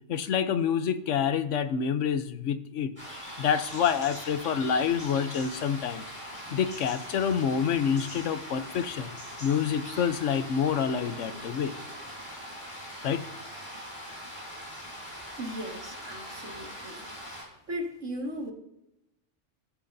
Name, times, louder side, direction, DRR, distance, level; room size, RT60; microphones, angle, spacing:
voice 1, 0.1-2.9 3.4-6.0 6.5-9.1 9.4-11.7 13.0-13.2, left 7 dB, 80° left, 11 dB, 1.1 m, -27 dB
sound 1, 3.0-17.4, equal, 25° left, 5.7 m, -42 dB
sound 2, 9.2-9.9 10.5-12.8, left 2 dB, 50° left, 2.6 m, -53 dB
voice 2, 15.4-17.0 17.7-18.5, equal, 90° right, 0 dB, 2.5 m, -37 dB
15.5 x 14.5 x 2.7 m, 0.88 s
omnidirectional pair, 1.2 m